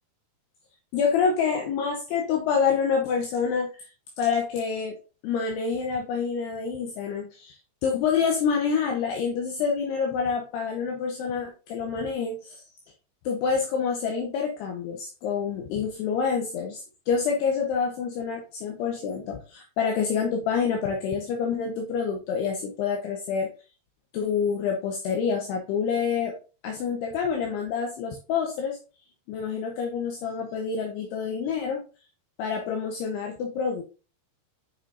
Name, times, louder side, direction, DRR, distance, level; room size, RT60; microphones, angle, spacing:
voice 1, 0.9-3.9 4.2-5.0 5.2-12.6 13.3-23.5 24.1-26.3 26.6-28.8 29.3-31.8 32.4-33.8, left 6 dB, 75° left, 1 dB, 2.7 m, -27 dB
8.7 x 4.9 x 2.5 m, 0.34 s
omnidirectional pair, 5.0 m